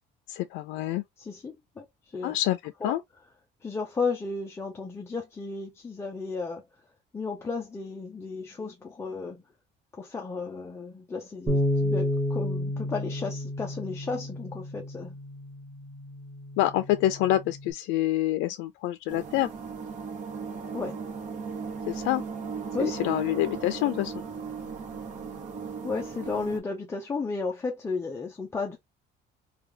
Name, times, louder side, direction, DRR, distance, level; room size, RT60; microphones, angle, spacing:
voice 1, 0.3-1.0 2.2-3.0 16.6-19.5 21.9-22.2 22.8-24.1, left 14 dB, 85° left, 0.4 m, -27 dB
voice 2, 1.2-2.4 2.8-2.9 3.6-6.6 7.1-9.4 9.9-15.2 20.7-21.0 22.7-23.1 25.8-28.8, left 4 dB, 15° left, 0.4 m, -34 dB
Bass guitar, 11.5-17.7, left 1 dB, 5° right, 1.3 m, -31 dB
sound 1, 19.1-26.6, right 5 dB, 40° right, 0.9 m, -37 dB
3.3 x 2.3 x 3.3 m
cardioid pair, 180°, 19 cm